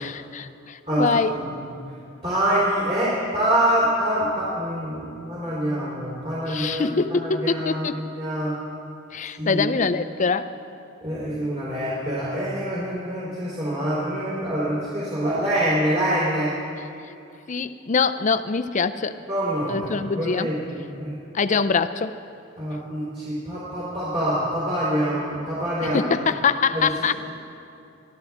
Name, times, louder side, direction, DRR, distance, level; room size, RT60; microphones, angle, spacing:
voice 1, 0.0-1.4 6.5-8.0 9.1-10.5 17.5-19.2 19.7-20.5 21.3-22.1 25.8-27.1, left 5 dB, 40° left, 12 dB, 0.5 m, -24 dB
voice 2, 2.2-6.8 7.2-8.5 9.4-9.6 11.0-16.5 19.3-21.1 22.6-26.0 26.7-27.2, right 1 dB, 30° right, -9 dB, 3.6 m, -25 dB
24.0 x 13.5 x 3.6 m, 2.6 s
head